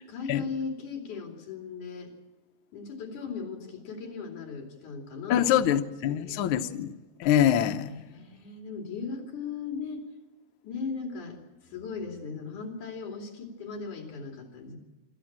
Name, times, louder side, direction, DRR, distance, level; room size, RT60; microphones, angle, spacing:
voice 1, 0.1-2.1 2.7-6.6 7.9-10.0 10.6-11.4 11.7-14.8, left 5 dB, 70° left, 4.4 m, -38 dB
voice 2, 5.3-6.9 7.2-7.9, left 10 dB, 90° left, 1.1 m, -24 dB
25.0 x 14.0 x 7.4 m
omnidirectional pair, 3.7 m